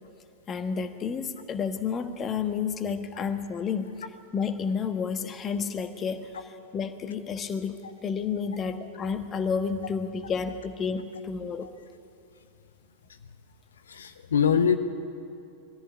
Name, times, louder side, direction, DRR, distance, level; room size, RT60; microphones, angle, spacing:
voice 1, 0.5-3.9 4.3-11.7, left 6 dB, 25° left, 9 dB, 1.3 m, -31 dB
voice 2, 13.9-14.8, left 7 dB, 65° left, 9 dB, 0.9 m, -23 dB
21.0 x 14.5 x 8.7 m, 2.6 s
figure-of-eight pair, 90°, 0 cm